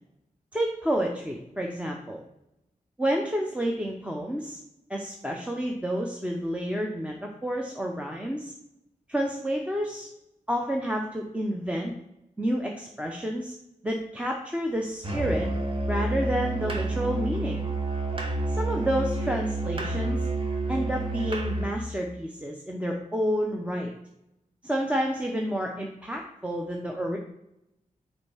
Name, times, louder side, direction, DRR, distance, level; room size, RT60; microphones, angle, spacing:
voice 1, 0.5-2.2 3.0-4.6 4.9-8.5 9.1-10.1 10.5-11.9 12.4-13.5 13.8-15.5 15.9-17.7 18.5-20.3 20.7-23.9 24.6-27.2, equal, 10° right, 1 dB, 0.6 m, -29 dB
Musical instrument, 15.0-21.8, right 2 dB, 40° right, 1.2 m, -29 dB
5.0 x 4.4 x 5.5 m, 0.88 s
wide cardioid pair, 120°, 14 cm